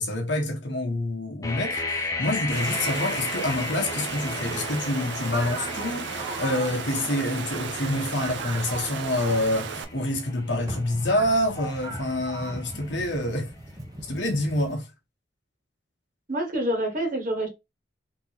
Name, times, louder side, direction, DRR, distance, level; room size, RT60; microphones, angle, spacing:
voice 1, 0.0-13.5 14.0-14.9, left 1 dB, 75° left, 1.1 m, -27 dB
sound 1, 1.4-13.2, left 2 dB, 20° left, 0.5 m, -36 dB
Water, 2.5-9.8, right 5 dB, 75° right, 0.6 m, -34 dB
sound 2, 3.6-14.7, right 1 dB, 20° right, 0.8 m, -40 dB
voice 2, 16.3-17.5, right 1 dB, 45° right, 1.4 m, -27 dB
3.7 x 2.9 x 2.9 m
head